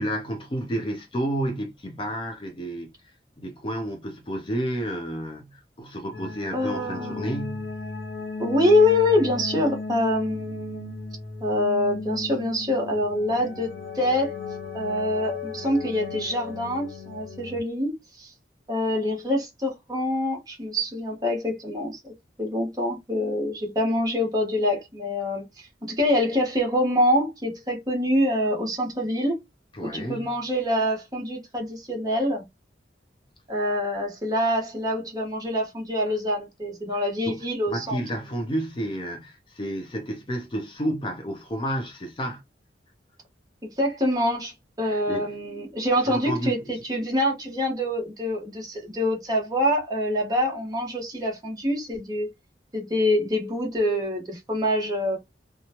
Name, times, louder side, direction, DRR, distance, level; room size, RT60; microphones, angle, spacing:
voice 1, 0.0-7.7 29.7-30.3 36.9-42.4 44.8-45.3 46.0-46.8, right 1 dB, 30° left, 0.5 m, -31 dB
sound 1, 6.1-17.6, left 4 dB, 75° left, 0.8 m, -36 dB
voice 2, 6.5-7.3 8.4-11.0 11.4-14.3 14.7-18.3 18.7-22.0 22.4-29.4 29.8-32.4 33.5-38.0 43.8-52.3 52.7-55.2, left 1 dB, 20° right, 1.2 m, -25 dB
2.8 x 2.3 x 2.8 m
head